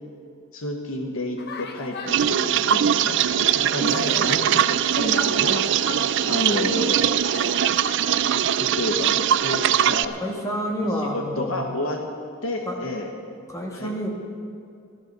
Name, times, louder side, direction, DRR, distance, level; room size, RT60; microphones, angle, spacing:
voice 1, 0.5-7.1 8.6-10.1 11.1-12.0 12.4-13.1 13.7-13.9, left 1 dB, 90° left, 1 dB, 1.3 m, -30 dB
sound 1, 1.4-8.7, left 2 dB, 50° left, 1.0 m, -37 dB
sound 2, 2.1-10.1, right 10 dB, 60° right, 0.4 m, -21 dB
voice 2, 10.1-11.6 12.6-12.8 13.5-14.1, equal, 15° left, 0 dB, 1.7 m, -28 dB
13.5 x 12.0 x 6.8 m, 2.4 s
head